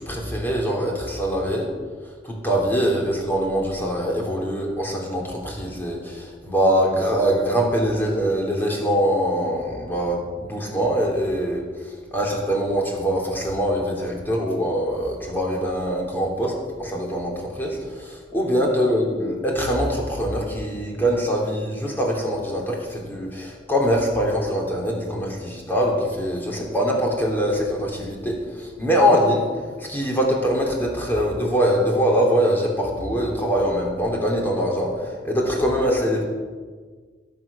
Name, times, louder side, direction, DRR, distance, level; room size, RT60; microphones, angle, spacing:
voice 1, 0.0-1.7 2.2-11.6 12.1-16.5 16.8-29.4 29.9-36.2, equal, 10° left, -2 dB, 3.3 m, -23 dB
20.5 x 8.1 x 6.2 m, 1.5 s
head